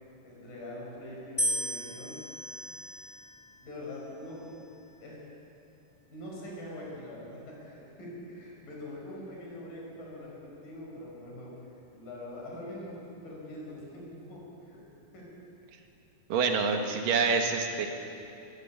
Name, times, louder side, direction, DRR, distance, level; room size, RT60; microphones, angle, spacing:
voice 1, 0.2-2.2 3.6-4.6 5.0-5.2 6.1-14.8 15.1-15.3, left 1 dB, 80° left, -3 dB, 6.8 m, -43 dB
sound 1, 1.4-3.6 4.4-4.9, equal, 15° left, 1.1 m, -35 dB
voice 2, 16.3-17.9, right 5 dB, 80° right, 4 dB, 3.2 m, -26 dB
23.0 x 13.5 x 8.5 m, 2.7 s
omnidirectional pair, 3.9 m